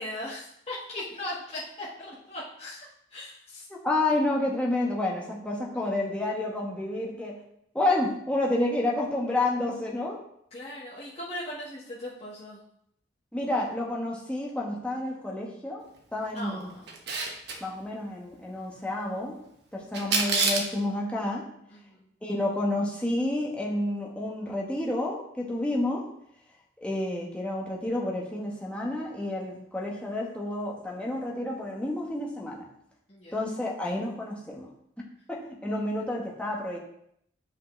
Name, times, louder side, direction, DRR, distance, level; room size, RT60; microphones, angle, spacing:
voice 1, 0.0-3.6 10.5-12.6 16.3-16.9 19.9-20.1 21.7-22.1 33.1-33.4, left 1 dB, 35° left, -8 dB, 1.5 m, -39 dB
voice 2, 3.7-7.4 7.7-10.2 13.3-15.8 16.1-16.7 17.6-19.4 19.7-21.4 22.2-26.0 26.8-32.7 33.3-34.7 35.3-36.8, left 1 dB, 5° left, -3 dB, 1.3 m, -30 dB
Camera, 16.9-17.6 19.9-20.7, right 3 dB, 65° right, 1.1 m, -26 dB
8.3 x 5.2 x 3.3 m, 0.72 s
head